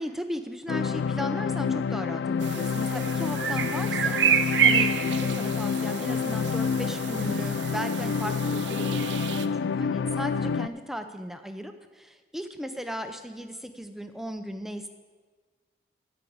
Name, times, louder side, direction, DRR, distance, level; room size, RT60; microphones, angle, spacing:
voice 1, 0.0-14.9, equal, ahead, 7 dB, 0.5 m, -36 dB
sound 1, 0.7-10.7, left 6 dB, 80° left, 0.3 m, -28 dB
sound 2, 2.4-9.5, right 8 dB, 85° right, 0.6 m, -29 dB
13.0 x 5.2 x 8.5 m, 1.4 s
head